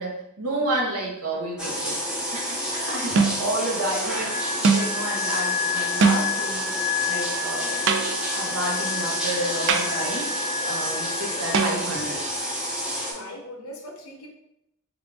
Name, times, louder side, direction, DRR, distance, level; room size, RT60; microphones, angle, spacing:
voice 1, 0.0-2.0 2.3-6.8 7.0-7.8 8.3-10.3 10.6-12.2, right 1 dB, 75° right, -2 dB, 1.0 m, -30 dB
sound 1, 1.3-1.7 3.1-3.6 4.6-5.0 6.0-6.5 7.9-8.4 9.7-10.1 11.5-12.2, right 5 dB, 55° right, 0.4 m, -23 dB
sound 2, 1.6-13.1, equal, 5° right, 0.7 m, -29 dB
Wind instrument woodwind instrument, 4.3-11.7, left 8 dB, 30° left, 0.4 m, -31 dB
voice 2, 13.0-14.3, left 1 dB, 65° left, 1 dB, 0.8 m, -40 dB
3.7 x 2.4 x 3.4 m, 0.82 s
head